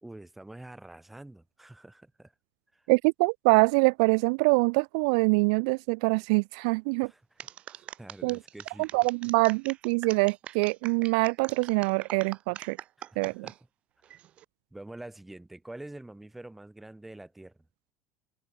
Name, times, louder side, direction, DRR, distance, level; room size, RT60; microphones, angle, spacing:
voice 1, 0.0-2.3 2.7-2.8 7.0-7.2 7.7-8.9 13.0-13.5 14.7-17.7, right 1 dB, 5° right, 3.8 m, -46 dB
voice 2, 2.9-7.1 8.2-8.4 8.8-12.8 13.2-13.5, right 32 dB, 70° right, 0.7 m, -24 dB
sound 1, 7.4-13.6 14.0-14.4, right 12 dB, 30° right, 6.3 m, -43 dB
open air
cardioid pair, 180°, 4 cm